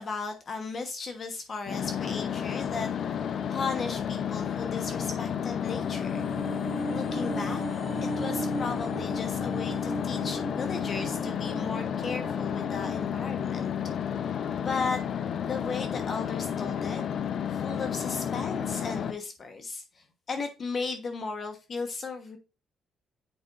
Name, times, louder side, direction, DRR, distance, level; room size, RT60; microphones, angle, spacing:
voice 1, 0.0-6.3 6.9-7.6 8.0-13.7 14.6-15.0 15.4-17.0 17.5-22.4, left 4 dB, 45° left, 6 dB, 1.1 m, -36 dB
sound 1, 1.7-19.1, left 8 dB, 60° left, 0.6 m, -31 dB
sound 2, 5.6-14.1 14.4-14.5, right 2 dB, 20° right, 1.1 m, -38 dB
7.9 x 5.1 x 2.5 m, 0.31 s
cardioid pair, 90°, 0 cm